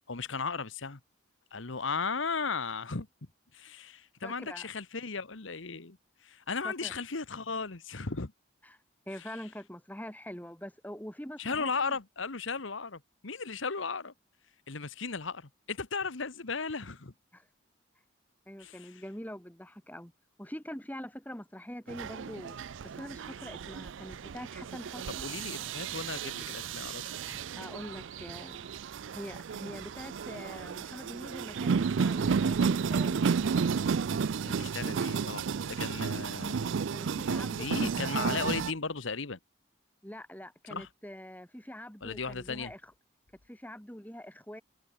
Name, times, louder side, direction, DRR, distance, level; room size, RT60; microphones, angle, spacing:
voice 1, 0.1-1.0 1.5-3.1 3.5-6.0 6.2-8.3 11.4-14.1 14.7-17.1 18.6-19.0 25.2-27.4 34.4-36.8 37.6-39.4 40.7-40.9 42.0-42.7, left 4 dB, 80° left, 1.4 m, -36 dB
voice 2, 4.2-4.7 6.6-6.9 8.6-8.8 9.1-12.0 17.3-17.5 18.5-20.1 20.4-25.3 27.6-28.7 29.1-33.6 36.9-38.5 40.0-42.9 43.5-44.6, equal, 10° left, 2.6 m, -44 dB
sound 1, 21.9-38.7, right 6 dB, 75° right, 0.4 m, -32 dB
sound 2, 25.7-30.7, right 4 dB, 35° right, 5.8 m, -57 dB
head